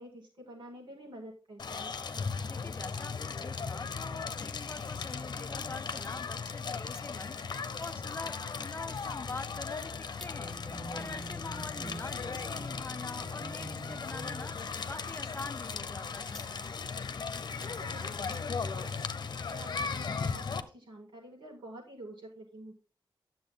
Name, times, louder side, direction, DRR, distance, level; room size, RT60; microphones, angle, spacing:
voice 1, 0.0-2.0 11.8-12.0 17.6-22.7, right 1 dB, 90° right, 5.7 m, -49 dB
Crackle, 1.6-20.6, left 5 dB, 60° left, 0.9 m, -37 dB
voice 2, 2.5-7.4 7.8-9.9 10.2-10.5 10.9-14.5 14.8-16.4, left 3 dB, 30° left, 0.5 m, -44 dB
sound 1, 6.0-6.1 6.9-7.1 7.4-8.3 8.5-9.1 9.5-9.6 10.2-10.3 10.7-13.1 13.3-13.5 13.9-17.1 17.6-19.1 19.5-19.9 20.2-20.6, left 1 dB, 5° left, 1.8 m, -56 dB
sound 2, 10.2-16.2, right 2 dB, 20° right, 1.3 m, -48 dB
10.0 x 7.6 x 3.8 m
wide cardioid pair, 90°, 8 cm